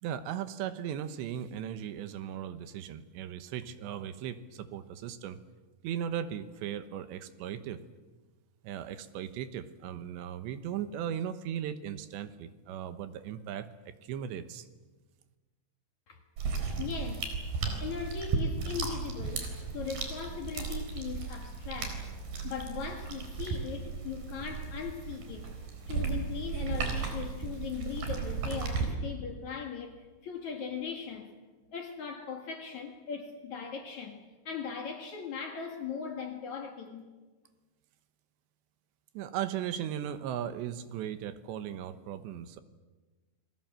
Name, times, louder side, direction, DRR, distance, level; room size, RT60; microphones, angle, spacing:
voice 1, 0.0-5.4 5.8-7.8 8.6-14.7 39.1-42.6, right 9 dB, 80° right, 3.3 m, -37 dB
sound 1, 16.4-28.9, right 5 dB, 60° right, 5.6 m, -35 dB
voice 2, 16.8-17.3 17.8-22.1 22.4-25.5 25.9-31.4 31.7-34.2 34.4-37.0, left 6 dB, 50° left, 2.7 m, -39 dB
29.0 x 21.5 x 7.7 m
omnidirectional pair, 5.2 m